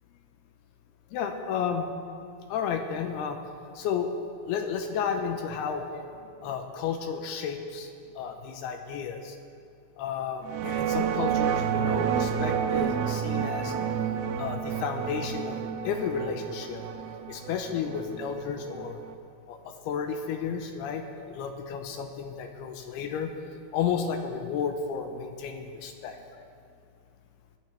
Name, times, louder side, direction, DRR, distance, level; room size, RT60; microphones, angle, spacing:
voice 1, 1.1-1.9 2.5-3.4 3.8-4.1 4.4-7.9 8.2-9.4 10.0-13.7 14.4-15.6 15.8-16.8 17.3-19.0 19.5-23.3 23.7-26.5, left 7 dB, 80° left, 5 dB, 2.4 m, -32 dB
sound 1, 10.4-19.1, right 8 dB, 80° right, 2.2 m, -29 dB
19.0 x 11.0 x 3.3 m, 2.4 s
omnidirectional pair, 5.1 m